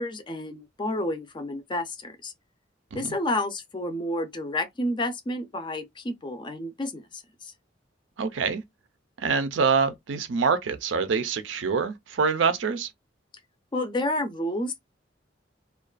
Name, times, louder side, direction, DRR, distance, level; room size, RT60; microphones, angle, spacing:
voice 1, 0.0-2.3 2.9-7.5 13.7-14.8, left 1 dB, 25° left, 0.4 m, -30 dB
voice 2, 8.2-8.6 9.2-12.9, right 5 dB, 80° right, 0.5 m, -25 dB
2.4 x 2.2 x 2.3 m
head